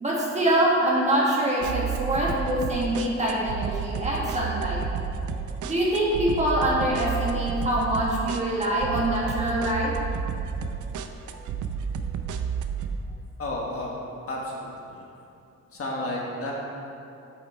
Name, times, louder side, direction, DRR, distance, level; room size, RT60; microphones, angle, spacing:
voice 1, 0.0-4.8 5.6-9.9, right 1 dB, 25° right, -5 dB, 1.6 m, -24 dB
sound 1, 1.6-13.0, right 6 dB, 90° right, 0.6 m, -31 dB
voice 2, 13.1-13.9 14.3-15.0 15.7-16.5, left 1 dB, 50° left, -3 dB, 1.5 m, -32 dB
7.5 x 7.2 x 4.5 m, 2.7 s
wide cardioid pair, 145°, 29 cm